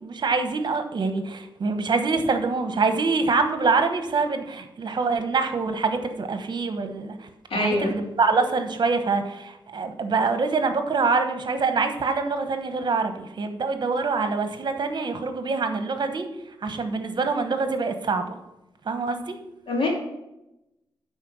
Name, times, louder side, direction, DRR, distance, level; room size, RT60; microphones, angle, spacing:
voice 1, 0.0-7.2 7.5-16.3 16.6-18.4 18.9-19.4, right 4 dB, 55° right, 7 dB, 1.1 m, -25 dB
voice 2, 7.5-7.9 19.7-19.9, left 2 dB, 80° left, -1 dB, 2.7 m, -24 dB
10.5 x 4.3 x 6.2 m, 0.91 s
wide cardioid pair, 135°, 9 cm